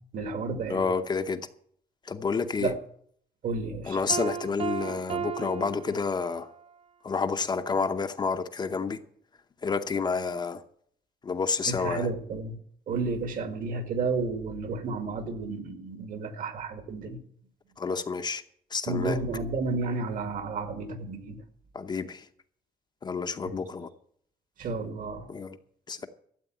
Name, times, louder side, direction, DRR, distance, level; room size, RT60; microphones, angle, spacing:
voice 1, 0.0-0.8 2.6-2.8 3.4-4.0 11.7-12.5 12.9-17.2 18.9-21.4 23.5-23.6 24.6-25.3, right 3 dB, 60° right, 8 dB, 2.1 m, -32 dB
voice 2, 0.7-1.4 2.0-2.7 3.9-6.5 7.0-9.0 9.6-10.6 11.2-12.1 17.8-18.4 18.7-19.2 21.7-22.3 23.0-23.9 25.3-25.6 25.9-26.1, left 5 dB, 25° left, 7 dB, 0.8 m, -29 dB
Piano, 4.1-6.6, right 8 dB, 35° right, 0.6 m, -35 dB
13.0 x 8.2 x 9.0 m, 0.63 s
cardioid pair, 180°, 16 cm